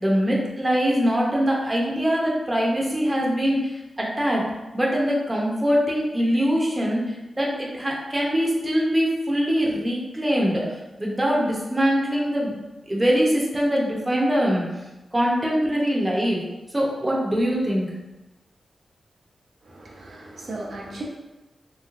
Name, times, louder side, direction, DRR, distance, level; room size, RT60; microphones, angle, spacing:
voice 1, 0.0-4.4 4.7-10.6 11.0-12.5 12.9-14.7 15.1-16.4 16.7-17.9, equal, 15° right, -4 dB, 0.6 m, -23 dB
voice 2, 19.6-21.0, right 2 dB, 65° right, -2 dB, 0.6 m, -36 dB
3.1 x 3.0 x 2.4 m, 1.1 s
wide cardioid pair, 120°, 0 cm